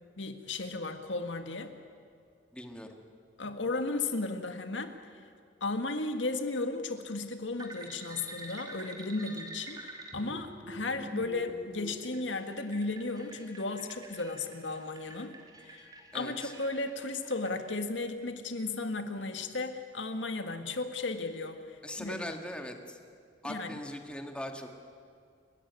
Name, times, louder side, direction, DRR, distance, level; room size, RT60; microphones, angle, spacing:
voice 1, 0.2-1.7 3.4-5.0 5.6-15.3 15.7-15.9 16.1-22.3 23.5-23.7, left 3 dB, 85° left, 7 dB, 1.7 m, -35 dB
voice 2, 2.5-3.0 16.1-16.5 21.8-23.0 23.4-24.7, left 1 dB, 5° left, 4 dB, 1.9 m, -40 dB
sound 1, 7.6-17.8, right 1 dB, 20° right, 2.9 m, -47 dB
29.5 x 14.0 x 9.6 m, 2.3 s
head